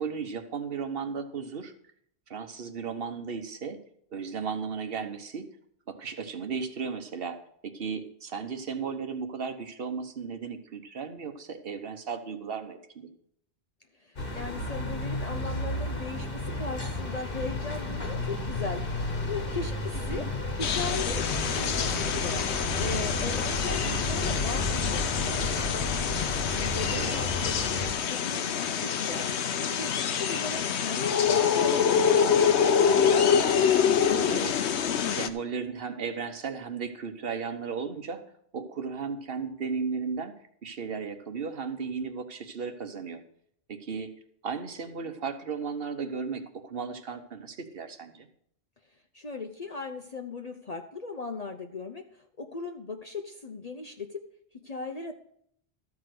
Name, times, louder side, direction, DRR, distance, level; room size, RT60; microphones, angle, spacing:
voice 1, 0.0-1.7 2.3-3.8 4.1-5.5 5.9-7.4 7.6-13.1 20.1-20.3 26.9-27.1 34.1-38.2 38.5-40.3 40.6-43.2 43.7-44.1 44.4-48.3, right 5 dB, 60° right, 8 dB, 1.3 m, -35 dB
voice 2, 13.9-20.3 20.6-22.5 22.8-25.9 26.5-27.8 28.1-32.8 49.1-54.2 54.5-55.1, left 3 dB, 40° left, 4 dB, 0.8 m, -38 dB
sound 1, 14.2-27.9, left 2 dB, 55° left, 1.5 m, -32 dB
sound 2, 20.6-35.3, left 7 dB, 80° left, 1.0 m, -26 dB
13.5 x 4.9 x 7.7 m, 0.68 s
omnidirectional pair, 1.1 m